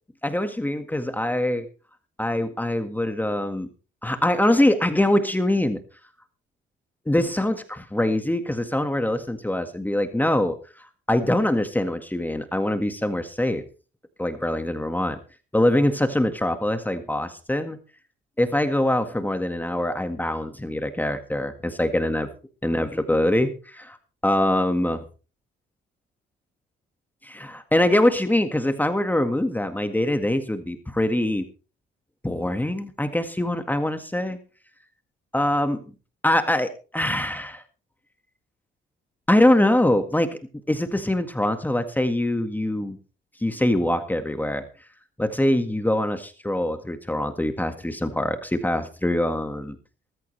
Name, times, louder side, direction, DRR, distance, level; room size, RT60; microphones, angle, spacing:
voice 1, 0.2-1.7 2.2-3.7 4.0-5.8 7.1-13.6 14.2-15.2 15.5-17.8 18.4-22.3 22.6-24.0 24.2-25.0 27.2-31.4 32.2-34.4 35.3-35.8 36.2-37.6 39.3-40.4 40.7-43.0 43.4-44.7 45.2-49.8, left 1 dB, 10° left, 7 dB, 1.8 m, -23 dB
18.5 x 14.5 x 3.3 m, 0.36 s
cardioid pair, 90°, 20 cm